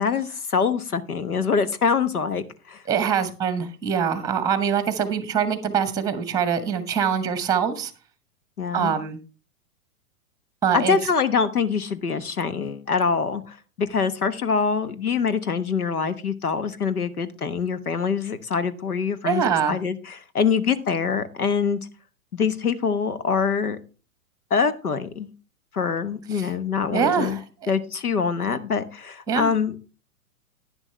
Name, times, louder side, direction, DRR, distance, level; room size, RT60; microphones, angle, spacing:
voice 1, 0.0-2.8 8.6-9.0 10.7-21.8 22.3-23.8 24.5-25.3 25.7-27.4 27.7-29.8, left 6 dB, 80° left, 13 dB, 1.2 m, -24 dB
voice 2, 2.9-7.9 8.7-9.2 10.6-11.0 19.2-19.8 26.3-26.5 26.9-27.7 29.3-29.5, right 7 dB, 10° right, 12 dB, 1.2 m, -24 dB
10.5 x 10.0 x 3.3 m, 0.34 s
figure-of-eight pair, 105°, 44 cm